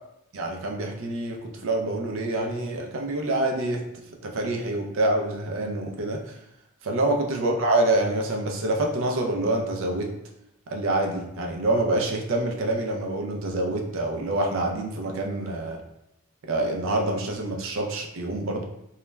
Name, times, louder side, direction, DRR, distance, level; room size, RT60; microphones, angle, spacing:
voice 1, 0.3-3.9 4.2-6.4 6.8-10.1 10.7-15.8 16.5-18.6, right 2 dB, 60° right, 1 dB, 0.4 m, -26 dB
2.3 x 2.1 x 3.1 m, 0.83 s
head